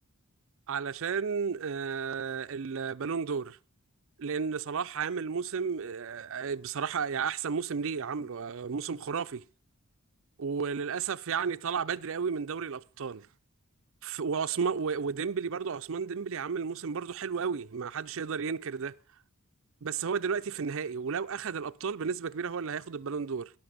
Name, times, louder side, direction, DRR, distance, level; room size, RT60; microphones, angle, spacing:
voice 1, 0.7-3.6 4.2-9.4 10.4-13.3 14.0-18.9 19.8-23.5, right 6 dB, 60° right, 0.5 m, -33 dB
17.0 x 6.0 x 6.6 m
head